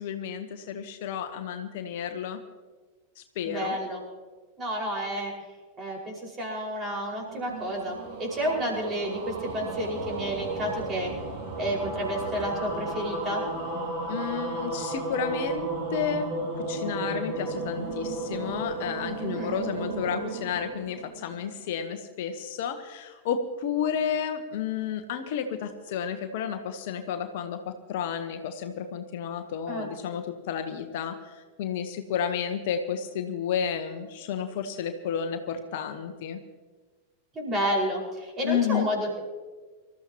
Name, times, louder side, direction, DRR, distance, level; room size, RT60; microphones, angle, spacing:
voice 1, 0.0-2.4 3.2-3.8 14.1-16.3 16.7-36.4 38.4-38.9, left 7 dB, 50° left, 7 dB, 1.2 m, -31 dB
voice 2, 3.4-4.0 4.6-5.3 5.8-11.1 11.6-13.4 19.2-19.6 29.7-29.9 37.4-39.2, equal, 25° right, -1 dB, 5.3 m, -30 dB
sound 1, 7.2-21.6, right 2 dB, 45° right, 2.6 m, -34 dB
25.5 x 14.0 x 3.0 m, 1.4 s
figure-of-eight pair, 90°, 0 cm